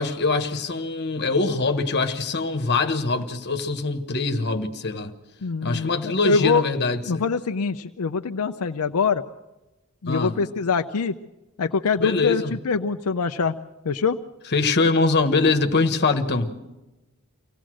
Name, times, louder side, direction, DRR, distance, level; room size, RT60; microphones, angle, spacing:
voice 1, 0.0-5.1 5.6-7.0 10.0-10.4 12.0-12.6 14.5-16.5, left 3 dB, 50° left, 1.4 m, -23 dB
voice 2, 5.4-6.6 7.1-9.2 10.0-11.1 11.6-13.5 13.8-14.2, left 5 dB, 80° left, 0.6 m, -24 dB
24.5 x 17.0 x 6.3 m
head